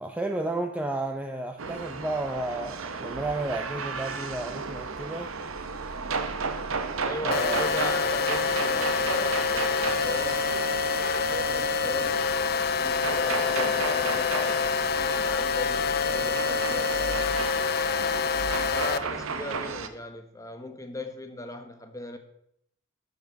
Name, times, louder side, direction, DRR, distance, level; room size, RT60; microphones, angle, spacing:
voice 1, 0.0-5.4 7.2-7.7, right 2 dB, 5° right, 4 dB, 0.5 m, -32 dB
sound 1, 1.6-19.9, right 4 dB, 80° right, 0.9 m, -34 dB
voice 2, 7.0-10.5 10.8-17.6 18.7-22.2, left 2 dB, 15° left, 6 dB, 1.1 m, -38 dB
sound 2, 7.3-19.0, left 6 dB, 50° left, 0.5 m, -26 dB
12.0 x 7.4 x 4.6 m, 0.75 s
head